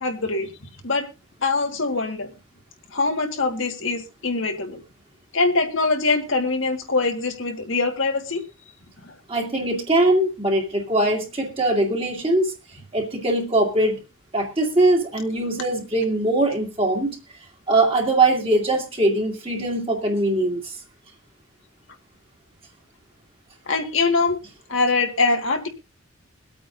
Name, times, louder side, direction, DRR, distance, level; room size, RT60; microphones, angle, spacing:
voice 1, 0.0-0.5 0.8-1.1 1.4-2.3 2.9-4.8 5.3-8.4 9.0-9.1 23.7-24.4 24.7-25.7, left 3 dB, 65° left, 4 dB, 1.6 m, -23 dB
voice 2, 9.3-12.5 12.9-14.0 14.3-17.1 17.7-20.8, right 2 dB, 25° right, 1 dB, 2.3 m, -21 dB
23.0 x 8.7 x 2.6 m, 0.27 s
head